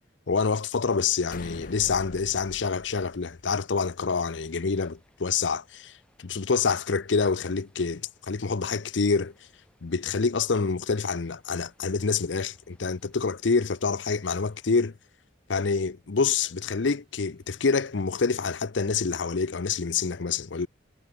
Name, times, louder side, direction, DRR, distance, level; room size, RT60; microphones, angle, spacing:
voice 1, 0.3-9.3 9.8-15.0 15.5-20.7, left 5 dB, 75° left, 0.7 m, -27 dB
sound 1, 1.3-3.9, left 2 dB, 45° left, 1.1 m, -44 dB
sound 2, 4.3-14.7, left 1 dB, 5° left, 7.9 m, -68 dB
sound 3, 16.8-18.1 19.1-19.2, right 2 dB, 30° right, 7.3 m, -70 dB
head